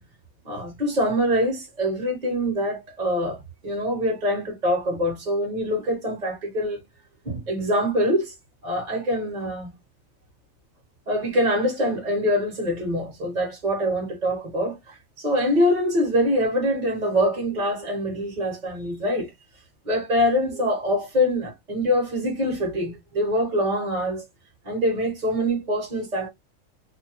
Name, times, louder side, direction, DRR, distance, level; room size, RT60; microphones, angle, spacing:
voice 1, 0.4-6.8 7.2-8.3 8.6-9.7 11.1-19.3 19.8-24.2 24.6-26.3, equal, 35° right, 1.0 m, -24 dB
2.6 x 2.1 x 2.8 m
omnidirectional pair, 1.4 m